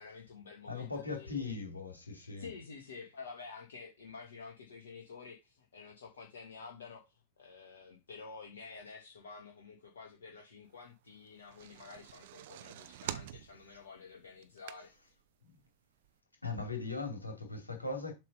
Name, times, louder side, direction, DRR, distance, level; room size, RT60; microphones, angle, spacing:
voice 1, 0.0-1.4 2.2-14.9, left 5 dB, 65° left, 1.4 m, -50 dB
voice 2, 0.6-2.5 15.4-15.6 16.4-18.1, left 4 dB, 85° left, 2.5 m, -39 dB
sound 1, 11.3-15.2 15.7-15.8 16.0-16.1, right 12 dB, 55° right, 0.6 m, -45 dB
7.5 x 3.6 x 5.4 m
figure-of-eight pair, 90°, 0 cm